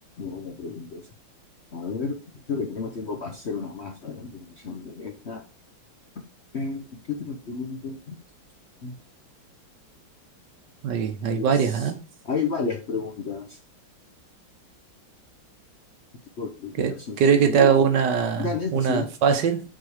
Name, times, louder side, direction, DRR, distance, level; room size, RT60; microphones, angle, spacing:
voice 1, 0.2-1.0 1.7-2.2 2.5-5.4 6.5-8.1 8.8-9.0 11.3-11.9 12.2-13.6 16.4-17.7 18.4-19.1, left 5 dB, 50° left, 0.8 m, -32 dB
voice 2, 10.8-12.0 16.8-19.6, right 7 dB, 70° right, 1.5 m, -21 dB
6.4 x 4.8 x 4.9 m
omnidirectional pair, 2.1 m